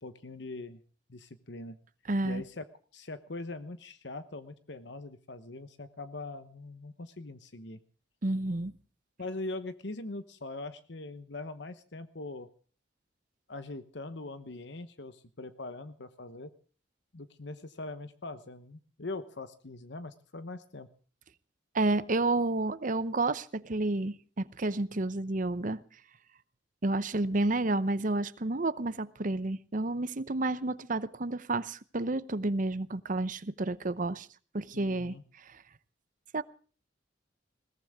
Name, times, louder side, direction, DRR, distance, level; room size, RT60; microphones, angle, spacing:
voice 1, 0.0-0.8 1.1-1.8 2.2-2.6 2.9-7.8 9.2-12.5 13.5-16.5 17.1-20.9 34.7-35.2, left 2 dB, 65° left, 1.0 m, -42 dB
voice 2, 2.1-2.4 8.2-8.7 21.7-25.8 26.8-34.3 34.5-35.6 36.3-36.4, right 2 dB, 45° right, 0.8 m, -30 dB
21.0 x 18.0 x 3.6 m
head